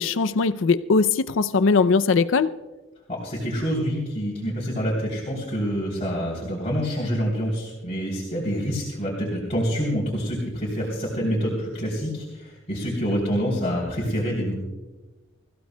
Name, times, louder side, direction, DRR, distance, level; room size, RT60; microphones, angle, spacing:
voice 1, 0.0-2.5, left 4 dB, 70° left, 13 dB, 0.5 m, -20 dB
voice 2, 3.1-14.5, equal, 30° left, -5 dB, 3.3 m, -27 dB
25.0 x 15.0 x 2.2 m, 1.2 s
head